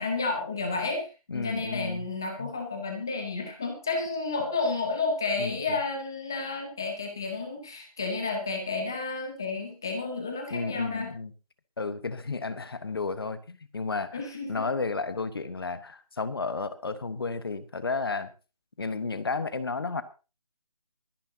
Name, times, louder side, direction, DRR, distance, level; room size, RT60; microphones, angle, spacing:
voice 1, 0.0-11.1 14.1-14.7, left 3 dB, 5° left, 4 dB, 0.7 m, -31 dB
voice 2, 1.3-2.1 2.4-2.5 5.4-5.6 10.5-11.3 11.8-18.3 18.8-20.0, left 4 dB, 40° left, 13 dB, 1.1 m, -32 dB
23.0 x 9.9 x 2.8 m, 0.32 s
figure-of-eight pair, 175°, 19 cm